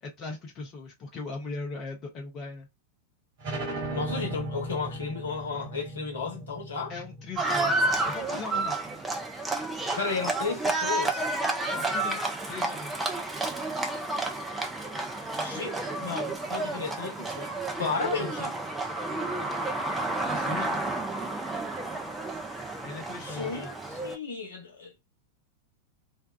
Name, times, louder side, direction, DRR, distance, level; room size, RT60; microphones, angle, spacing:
voice 1, 0.0-2.7 6.9-8.8 11.6-13.0 17.8-18.4 20.3-20.9 22.8-23.7, left 3 dB, 30° left, 0.7 m, -39 dB
sound 1, 3.4-8.7, right 1 dB, 50° right, 1.4 m, -37 dB
voice 2, 3.9-6.9 10.0-11.3 15.4-18.5 23.2-24.9, left 5 dB, 65° left, 1.0 m, -34 dB
Livestock farm animals working animals, 7.4-24.2, right 2 dB, 10° right, 0.6 m, -31 dB
2.5 x 2.2 x 2.3 m
figure-of-eight pair, 90°, 0 cm